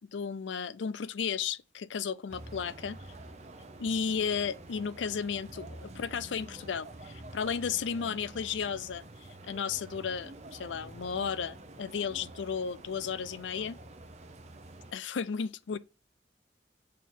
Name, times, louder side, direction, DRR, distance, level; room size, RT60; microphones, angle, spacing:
voice 1, 0.1-3.0 3.8-13.8 14.9-15.8, left 6 dB, 85° left, 0.5 m, -34 dB
sound 1, 2.3-14.9, right 2 dB, 40° right, 0.8 m, -48 dB
6.4 x 4.2 x 3.8 m
head